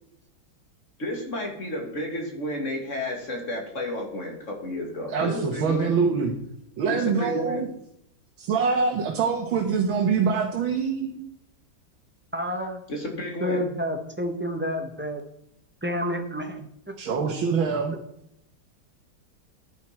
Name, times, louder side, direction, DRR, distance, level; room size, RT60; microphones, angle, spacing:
voice 1, 1.0-5.9 6.9-7.6 12.9-13.6, left 1 dB, 40° left, 2 dB, 2.5 m, -32 dB
voice 2, 5.1-6.3 6.8-7.7 8.4-11.2 17.0-17.9, right 5 dB, 85° right, 0 dB, 2.1 m, -24 dB
voice 3, 12.3-12.8 13.4-15.2 15.8-16.9, equal, 10° right, 4 dB, 0.8 m, -29 dB
11.0 x 9.8 x 4.5 m, 0.76 s
omnidirectional pair, 2.1 m